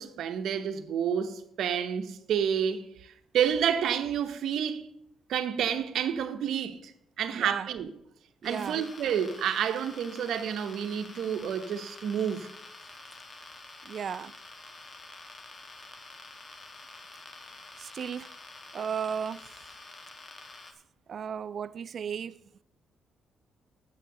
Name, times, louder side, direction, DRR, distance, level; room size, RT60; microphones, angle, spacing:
voice 1, 0.0-4.9 5.3-6.9 7.2-7.9 8.4-12.5, right 8 dB, 75° right, 0.9 m, -29 dB
voice 2, 7.3-7.7 8.4-8.8 13.8-14.3 17.8-18.3 18.7-19.4 21.1-22.4, right 7 dB, 55° right, 0.4 m, -35 dB
sound 1, 8.4-20.7, left 3 dB, 35° left, 1.2 m, -48 dB
7.4 x 6.6 x 6.7 m
cardioid pair, 90°, 0 cm